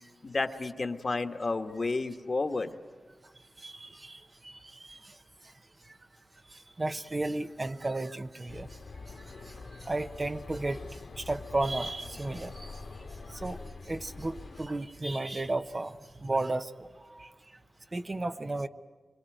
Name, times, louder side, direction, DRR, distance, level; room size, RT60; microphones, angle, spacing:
voice 1, 0.2-2.8, left 3 dB, 50° left, 7 dB, 1.4 m, -31 dB
voice 2, 3.6-5.2 6.5-8.7 9.4-12.8 13.3-13.6 13.9-17.3 17.9-18.7, right 2 dB, 35° right, 9 dB, 0.9 m, -34 dB
sound 1, 8.5-14.7, left 3 dB, 80° left, 2.1 m, -45 dB
26.0 x 24.0 x 9.1 m, 1.4 s
wide cardioid pair, 70°, 0 cm